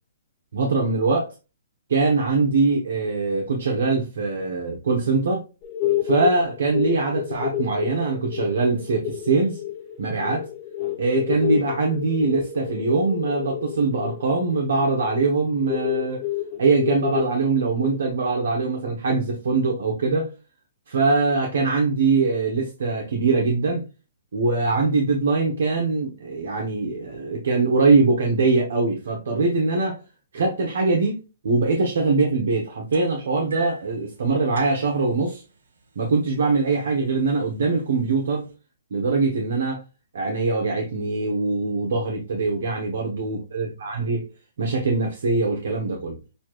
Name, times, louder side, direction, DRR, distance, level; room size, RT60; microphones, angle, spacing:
voice 1, 0.5-1.3 1.9-5.4 6.0-9.6 10.0-10.5 11.0-16.2 16.6-20.3 20.9-23.8 24.3-30.0 30.3-35.4 35.9-38.5 38.9-39.8 40.1-44.3 44.6-46.2, right 3 dB, 70° right, 1.1 m, -22 dB
sound 1, 5.6-18.1, left 12 dB, 25° left, 1.2 m, -30 dB
sound 2, 32.9-33.9 34.6-35.0 36.0-36.1 36.5-36.8 37.6-37.7, right 3 dB, 90° right, 1.3 m, -38 dB
6.8 x 2.5 x 3.1 m
hypercardioid pair, 155°, 0 cm